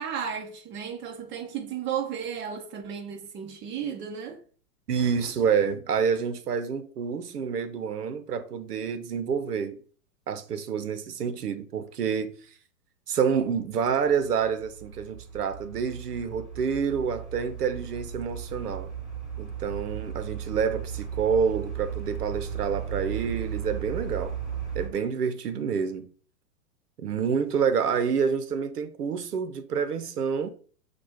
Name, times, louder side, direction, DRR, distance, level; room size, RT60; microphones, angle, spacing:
voice 1, 0.0-4.4, right 8 dB, 25° right, 0.9 m, -34 dB
voice 2, 4.9-9.8 10.3-12.3 13.1-18.9 19.4-24.4 24.7-26.1 27.0-30.5, right 6 dB, 85° right, 0.8 m, -28 dB
sound 1, 14.0-24.9, right 8 dB, ahead, 1.8 m, -36 dB
6.4 x 2.4 x 2.9 m
hypercardioid pair, 110°, 45 cm